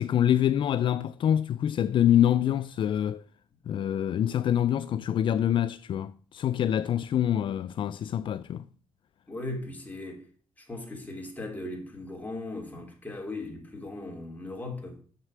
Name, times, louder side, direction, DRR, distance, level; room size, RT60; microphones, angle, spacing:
voice 1, 0.0-3.2 3.7-8.6, left 10 dB, 60° left, 0.4 m, -25 dB
voice 2, 9.3-10.2 10.6-15.0, left 2 dB, 15° left, 3.1 m, -38 dB
7.5 x 6.6 x 5.9 m
cardioid pair, 110°, 10 cm